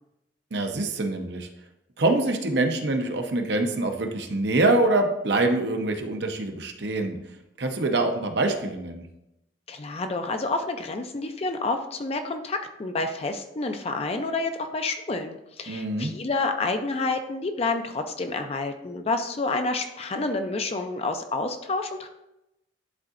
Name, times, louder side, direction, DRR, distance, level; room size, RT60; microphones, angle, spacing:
voice 1, 0.5-1.5 2.0-7.2 7.6-9.0 15.7-16.1, right 2 dB, 65° right, 4 dB, 0.8 m, -25 dB
voice 2, 9.7-22.1, left 3 dB, 35° left, 6 dB, 0.5 m, -29 dB
10.5 x 3.8 x 2.5 m, 0.90 s
head